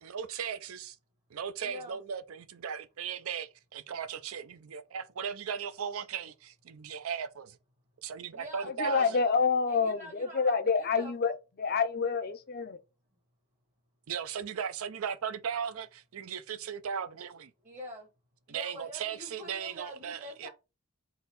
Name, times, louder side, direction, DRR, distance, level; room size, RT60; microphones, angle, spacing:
voice 1, 0.0-1.0 1.3-7.6 8.0-9.2 14.1-17.5 18.5-20.5, right 7 dB, 70° right, 0.5 m, -37 dB
voice 2, 1.6-2.0 8.3-9.1 9.7-11.1 17.6-18.1 18.5-20.5, equal, 35° right, 1.0 m, -45 dB
voice 3, 8.8-12.8, left 5 dB, 45° left, 0.5 m, -28 dB
4.0 x 2.7 x 4.0 m
head